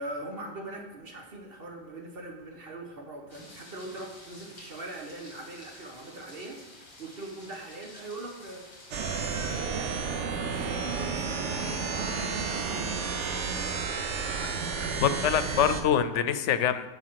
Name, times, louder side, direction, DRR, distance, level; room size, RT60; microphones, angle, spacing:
voice 1, 0.0-13.8 14.2-15.4, right 2 dB, 55° right, 2 dB, 1.4 m, -42 dB
sound 1, 3.3-9.6, left 1 dB, 40° left, 1.9 m, -50 dB
sound 2, 8.9-15.8, right 5 dB, 80° right, 1.1 m, -31 dB
voice 2, 15.0-16.9, left 8 dB, 90° left, 12 dB, 0.9 m, -25 dB
7.8 x 5.6 x 5.8 m, 1.1 s
omnidirectional pair, 1.2 m